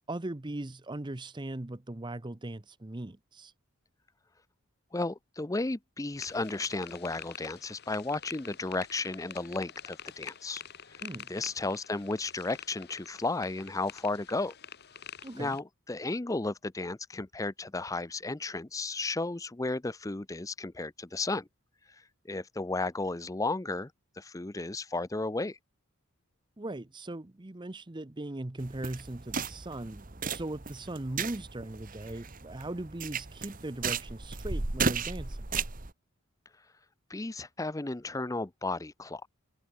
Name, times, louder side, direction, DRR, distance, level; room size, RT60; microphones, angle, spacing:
voice 1, 0.0-3.5 11.0-11.3 15.2-15.6 26.6-35.5, right 1 dB, 20° right, 0.7 m, -39 dB
voice 2, 4.9-10.6 10.9-11.0 11.3-14.5 15.3-21.5 22.2-23.9 24.2-25.6 37.1-39.3, left 2 dB, 15° left, 0.5 m, -34 dB
sound 1, 6.2-15.6, left 9 dB, 45° left, 1.6 m, -47 dB
sound 2, 28.6-35.9, right 5 dB, 40° right, 1.5 m, -35 dB
head